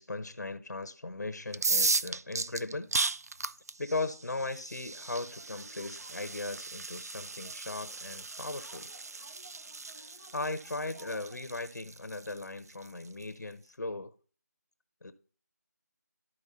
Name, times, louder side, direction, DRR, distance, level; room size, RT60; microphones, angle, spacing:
voice 1, 0.0-3.1 3.8-8.9 10.0-14.1 15.0-15.1, left 2 dB, 75° left, 1.0 m, -38 dB
sound 1, 1.5-13.2, right 3 dB, 60° right, 0.4 m, -36 dB
sound 2, 5.0-11.5, right 2 dB, 30° right, 4.5 m, -57 dB
12.5 x 4.6 x 4.2 m
figure-of-eight pair, 170°, 9 cm